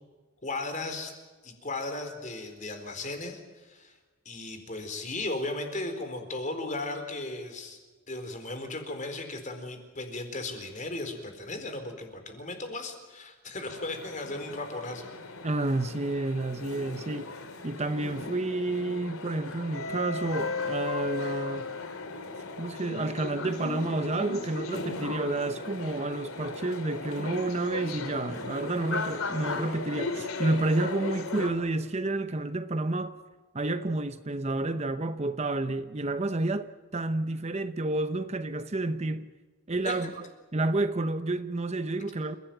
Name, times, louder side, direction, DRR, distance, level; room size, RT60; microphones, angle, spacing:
voice 1, 0.4-1.1 1.4-4.0 4.2-7.8 8.1-15.1 39.8-40.1, left 2 dB, 35° left, 4.3 m, -36 dB
sound 1, 13.6-31.5, left 3 dB, 80° left, 3.1 m, -36 dB
voice 2, 15.4-17.3 17.6-21.7 22.6-33.1 33.5-39.3 39.7-40.3 40.5-42.3, right 2 dB, 30° right, 0.8 m, -30 dB
29.5 x 16.5 x 9.1 m
head